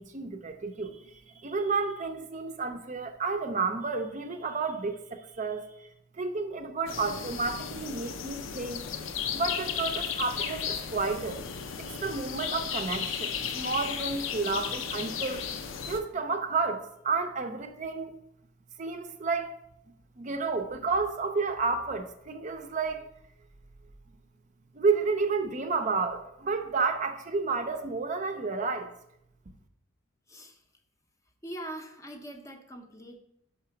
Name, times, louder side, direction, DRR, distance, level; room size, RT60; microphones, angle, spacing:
voice 1, 0.0-5.9 6.1-8.8 9.3-11.4 11.8-15.5 15.9-18.2 18.8-19.6 20.2-23.1 24.7-28.9, right 4 dB, 35° right, 0.5 m, -31 dB
sound 1, 6.9-16.0, left 7 dB, 70° left, 0.6 m, -35 dB
voice 2, 30.3-30.6 31.4-33.2, right 1 dB, 15° left, 0.6 m, -42 dB
5.7 x 4.9 x 5.6 m
head